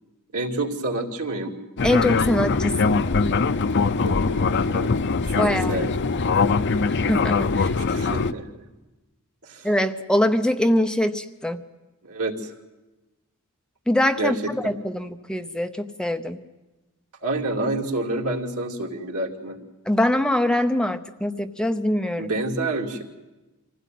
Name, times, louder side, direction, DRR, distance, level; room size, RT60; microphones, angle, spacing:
voice 1, 0.3-1.5 4.0-4.9 5.3-5.9 7.8-8.7 9.4-9.7 12.0-12.5 14.2-14.4 17.2-19.6 22.2-23.0, right 2 dB, 85° right, 1 dB, 2.8 m, -28 dB
Fixed-wing aircraft airplane, 1.8-8.3, left 4 dB, 55° left, 0.7 m, -22 dB
voice 2, 1.8-3.0 5.3-5.9 7.1-7.7 9.6-11.6 13.9-16.4 19.9-22.3, left 1 dB, 5° left, 7 dB, 0.8 m, -23 dB
25.0 x 16.0 x 9.3 m, 1.1 s
head